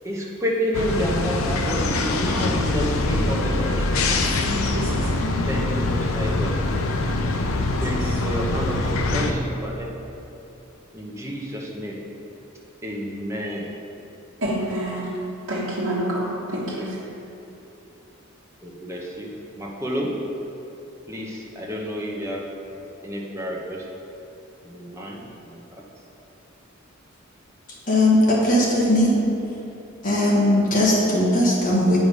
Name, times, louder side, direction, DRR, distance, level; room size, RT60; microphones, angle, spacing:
voice 1, 0.0-3.9 5.4-6.5 7.8-8.8 9.1-9.9 10.9-12.0 12.8-13.7 18.6-20.1 21.1-22.4 23.0-23.8 24.6-25.8, equal, 15° right, -3 dB, 1.1 m, -30 dB
sound 1, 0.7-9.3, left 2 dB, 85° left, 0.6 m, -24 dB
voice 2, 4.5-5.4 8.0-8.2 14.4-15.1 15.5-17.0, right 1 dB, 60° right, -9 dB, 1.3 m, -28 dB
voice 3, 27.9-29.2 30.0-32.0, left 1 dB, 40° left, -5 dB, 1.6 m, -18 dB
8.9 x 5.0 x 5.4 m, 2.9 s
head